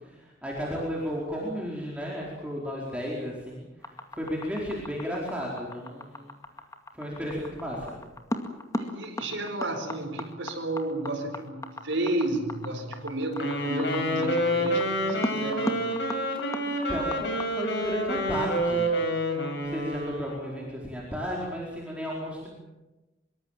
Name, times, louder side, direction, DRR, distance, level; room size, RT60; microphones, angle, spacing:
voice 1, 0.0-6.4 6.9-7.9 16.6-18.9 19.5-22.5, equal, 5° right, -4 dB, 4.6 m, -34 dB
sound 1, 3.8-17.5, left 1 dB, 15° left, 2.1 m, -35 dB
voice 2, 8.7-15.9, right 1 dB, 75° right, 5 dB, 4.7 m, -32 dB
Wind instrument woodwind instrument, 13.3-20.6, equal, 65° left, 6.6 m, -28 dB
25.0 x 23.5 x 7.4 m, 1.1 s
head